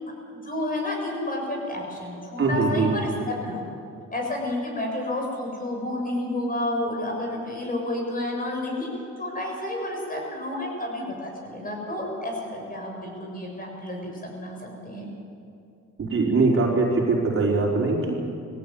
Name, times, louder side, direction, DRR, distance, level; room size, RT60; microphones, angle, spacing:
voice 1, 0.3-3.6 4.1-8.9 9.2-14.6 14.8-15.1, left 1 dB, 30° left, 0 dB, 7.1 m, -30 dB
voice 2, 2.4-2.9 16.0-18.1, right 3 dB, 45° right, -2 dB, 4.6 m, -22 dB
19.5 x 16.5 x 8.7 m, 2.5 s
cardioid pair, 90°, 30 cm